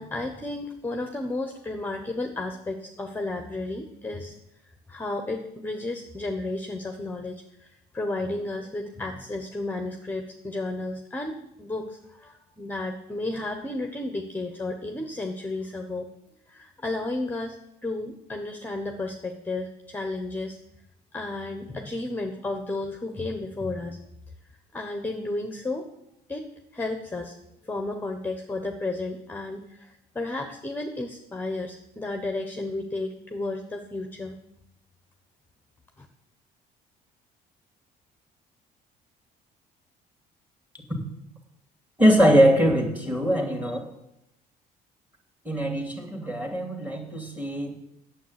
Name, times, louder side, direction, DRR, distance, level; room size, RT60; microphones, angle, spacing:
voice 1, 0.0-4.3 4.9-16.1 16.5-17.6 17.8-20.6 21.1-24.0 24.7-25.9 26.3-26.5 26.7-27.3 27.6-34.4 36.0-36.1, left 2 dB, 10° left, 4 dB, 1.1 m, -32 dB
voice 2, 42.0-43.8 45.4-47.8, equal, 10° right, 4 dB, 2.5 m, -22 dB
9.2 x 7.2 x 8.1 m, 0.83 s
cardioid pair, 110°, 17 cm